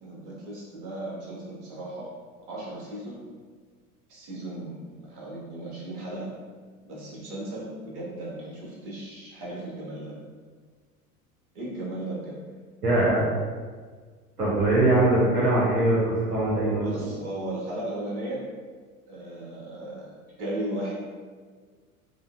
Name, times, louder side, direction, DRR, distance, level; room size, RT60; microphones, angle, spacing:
voice 1, 0.0-2.1 2.5-3.2 4.1-6.3 6.8-10.1 11.5-12.4 16.7-18.4 19.1-20.1 20.4-20.9, right 1 dB, 50° right, -5 dB, 1.1 m, -36 dB
voice 2, 12.8-13.3 14.4-16.0 16.3-17.1, right 2 dB, 85° right, -7 dB, 0.8 m, -22 dB
3.7 x 2.0 x 2.3 m, 1.5 s
figure-of-eight pair, 85°, 44 cm